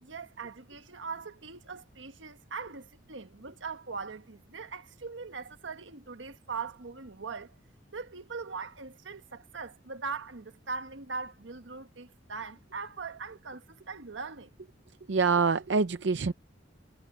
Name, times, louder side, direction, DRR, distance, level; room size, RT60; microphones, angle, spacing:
voice 1, 0.0-7.6 7.9-14.5, right 4 dB, 90° right, 1.4 m, -41 dB
voice 2, 15.1-16.3, right 5 dB, 70° right, 0.6 m, -25 dB
head